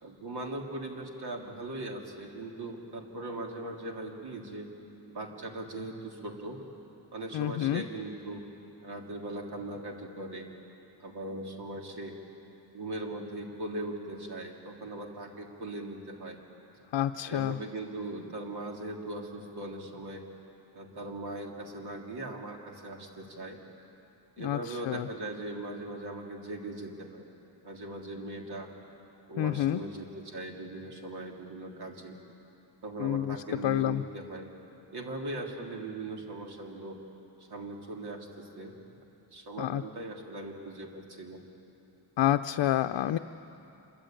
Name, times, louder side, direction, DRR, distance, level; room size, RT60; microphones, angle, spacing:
voice 1, 0.0-4.7 5.1-6.6 7.1-8.4 8.8-10.5 11.0-12.1 12.7-16.4 17.3-20.3 20.7-23.6 24.4-27.3 27.6-28.7 29.3-32.2 32.8-34.5 34.9-37.0 37.5-38.8 39.3-41.5, right 2 dB, 60° right, 1 dB, 3.3 m, -39 dB
voice 2, 7.3-7.8 16.9-17.6 24.4-25.1 29.4-29.8 33.0-33.4 33.6-34.0 39.6-39.8 42.2-43.2, left 12 dB, 80° left, 7 dB, 0.7 m, -28 dB
27.0 x 23.5 x 9.0 m, 3.0 s
wide cardioid pair, 175°, 43 cm